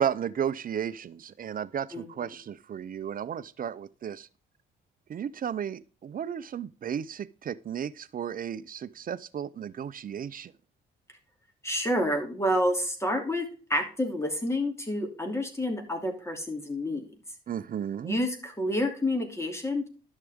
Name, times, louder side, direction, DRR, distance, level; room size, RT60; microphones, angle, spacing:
voice 1, 0.0-4.3 5.1-10.5 17.5-18.2, right 8 dB, 45° right, 0.6 m, -33 dB
voice 2, 1.9-2.3 11.6-17.1 18.0-19.9, left 1 dB, 15° left, 2.8 m, -29 dB
11.5 x 6.6 x 3.6 m
cardioid pair, 90°, 20 cm